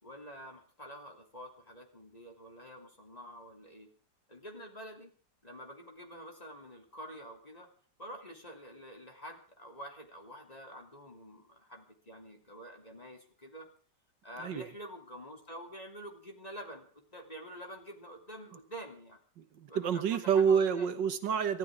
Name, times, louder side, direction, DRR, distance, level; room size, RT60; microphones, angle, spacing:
voice 1, 0.0-3.9 4.3-5.1 5.4-7.7 8.0-13.7 14.2-19.2 19.7-20.9, equal, 20° left, 2 dB, 3.0 m, -47 dB
voice 2, 19.4-21.6, right 7 dB, 80° right, 10 dB, 1.8 m, -28 dB
28.5 x 13.0 x 3.7 m, 0.42 s
omnidirectional pair, 2.0 m